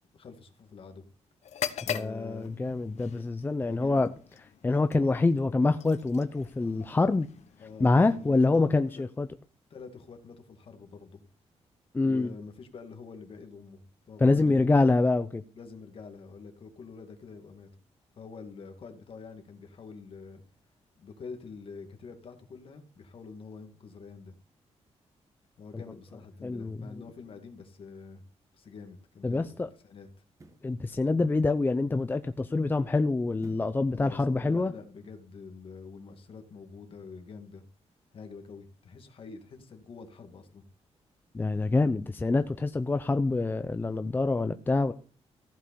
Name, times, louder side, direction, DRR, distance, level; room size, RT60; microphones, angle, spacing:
voice 1, 0.1-1.0 1.8-2.6 3.6-4.1 7.6-8.6 9.0-9.1 9.7-11.2 12.0-14.7 15.5-17.7 18.2-20.4 21.0-24.4 25.6-28.2 28.5-29.5 29.8-30.1 33.9-37.6 38.1-40.6, left 5 dB, 50° left, 6 dB, 2.2 m, -46 dB
sound 1, 1.4-9.2, left 9 dB, 80° left, 1.1 m, -42 dB
voice 2, 1.9-4.1 4.6-7.3 7.8-9.3 11.9-12.3 14.2-15.4 26.4-26.8 29.2-29.7 30.6-34.7 41.3-44.9, left 3 dB, 15° left, 9 dB, 0.5 m, -26 dB
sound 2, 28.4-28.6 30.3-30.8 33.4-33.8 34.3-34.4, right 2 dB, 30° right, 1.6 m, -53 dB
15.0 x 5.5 x 6.9 m, 0.38 s
wide cardioid pair, 150°, 12 cm